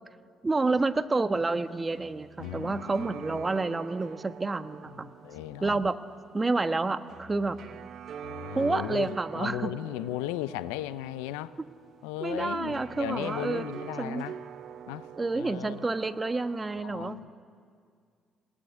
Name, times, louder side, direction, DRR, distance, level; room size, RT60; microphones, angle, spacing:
voice 1, 0.4-5.1 5.6-6.0 6.3-7.6 8.5-9.7 12.2-13.6 14.0-14.3 15.2-17.3, right 3 dB, 25° right, 10 dB, 1.4 m, -29 dB
sound 1, 1.6-16.8, right 9 dB, 60° right, 0.9 m, -45 dB
voice 2, 2.4-3.4 5.0-5.8 8.2-11.5 12.0-14.4 14.9-15.1 15.4-15.8 16.8-17.3, left 15 dB, 80° left, 16 dB, 0.6 m, -36 dB
28.0 x 19.0 x 9.8 m, 2.2 s
hypercardioid pair, 50°, 0 cm